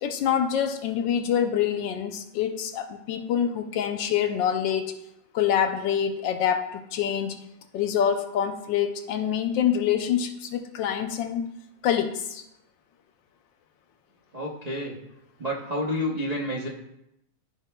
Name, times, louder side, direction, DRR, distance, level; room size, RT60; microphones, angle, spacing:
voice 1, 0.0-4.9 5.3-7.4 7.7-11.5 11.8-12.4, left 9 dB, 75° left, 7 dB, 1.2 m, -26 dB
voice 2, 14.3-14.9 15.4-16.7, left 1 dB, 50° right, -5 dB, 0.4 m, -29 dB
14.5 x 5.1 x 2.2 m, 0.85 s
omnidirectional pair, 2.2 m